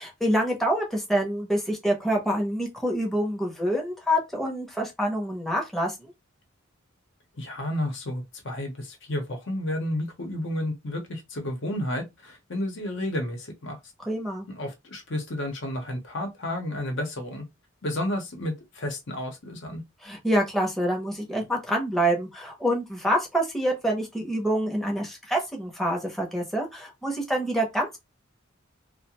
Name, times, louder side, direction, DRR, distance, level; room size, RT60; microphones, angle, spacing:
voice 1, 0.0-6.1 14.1-14.5 20.0-28.0, equal, ahead, 0.6 m, -26 dB
voice 2, 7.4-13.8 14.5-17.4 17.8-19.8, left 1 dB, 65° left, 0.8 m, -31 dB
2.4 x 2.1 x 2.8 m
head